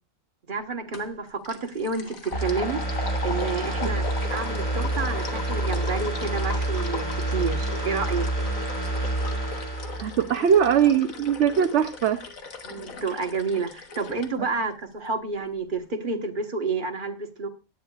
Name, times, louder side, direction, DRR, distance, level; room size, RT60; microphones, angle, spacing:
voice 1, 0.5-8.3 12.6-17.5, right 4 dB, 35° right, 4 dB, 1.4 m, -30 dB
sound 1, 0.9-1.2 1.4-14.3, left 5 dB, 75° left, 1.8 m, -38 dB
sound 2, 2.3-11.0 11.3-11.4, right 2 dB, 15° left, 4.8 m, -28 dB
voice 2, 10.0-12.2, right 8 dB, 60° right, 7 dB, 0.9 m, -21 dB
17.5 x 10.5 x 2.4 m, 0.29 s
omnidirectional pair, 1.5 m